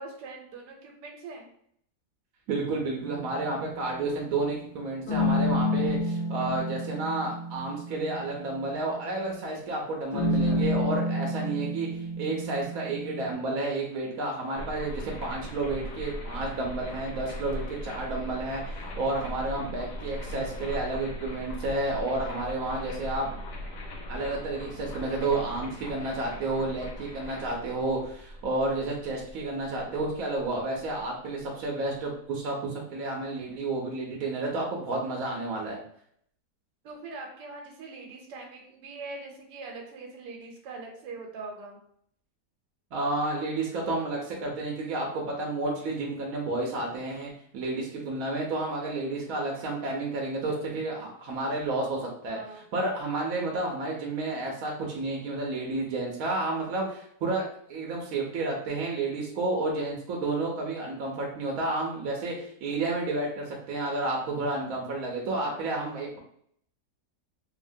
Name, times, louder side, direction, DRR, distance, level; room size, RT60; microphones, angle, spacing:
voice 1, 0.0-1.5 10.1-10.7 16.3-16.7 36.8-41.8 52.3-52.6 65.4-65.7, right 3 dB, 90° right, 2 dB, 1.2 m, -42 dB
voice 2, 2.5-23.3 24.1-35.8 42.9-52.4 52.7-57.4 57.7-66.2, right 2 dB, 70° right, -1 dB, 1.0 m, -31 dB
sound 1, 3.0-4.0 5.1-9.1 10.1-13.3, left 1 dB, 60° left, 1.1 m, -30 dB
sound 2, 14.5-31.4, equal, 90° left, 1.3 m, -40 dB
2.7 x 2.7 x 2.6 m, 0.67 s
omnidirectional pair, 1.8 m